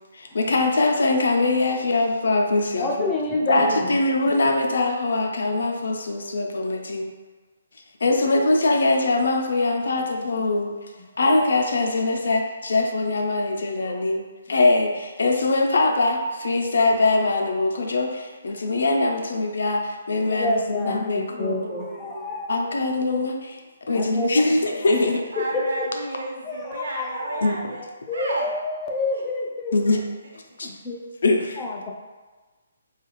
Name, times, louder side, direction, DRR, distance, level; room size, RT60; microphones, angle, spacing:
voice 1, 0.1-3.1 3.5-7.1 8.0-10.7 11.2-14.2 14.5-21.7 22.5-25.2 27.4-27.6 29.7-30.0 30.6-30.7 31.2-31.6, left 2 dB, 70° left, 2 dB, 0.5 m, -22 dB
voice 2, 2.8-4.0 9.9-10.0 13.8-14.0 20.3-22.7 23.9-24.3 25.4-25.9 26.5-27.5 28.1-29.8 30.6-31.0 31.6-31.9, left 2 dB, 10° left, -2 dB, 0.3 m, -28 dB
voice 3, 21.3-22.5 23.9-27.9 28.1-28.5 29.1-29.2 30.5-30.7, right 2 dB, 65° right, -2 dB, 0.9 m, -34 dB
4.0 x 2.4 x 3.0 m, 1.3 s
hypercardioid pair, 175°, 0 cm